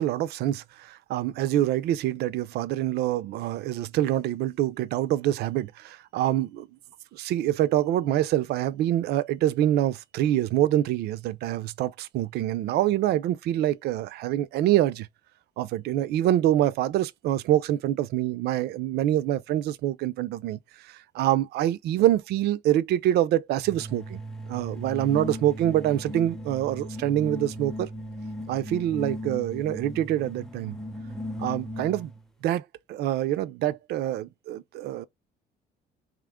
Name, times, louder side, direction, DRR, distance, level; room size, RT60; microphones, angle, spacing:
voice 1, 0.0-6.7 7.1-15.1 15.6-24.2 24.5-27.9 28.5-30.8 31.4-32.1 32.4-35.1, right 13 dB, 75° right, 0.5 m, -25 dB
sound 1, 23.6-32.2, equal, ahead, 0.6 m, -37 dB
3.8 x 2.9 x 3.5 m
cardioid pair, 110°, 17 cm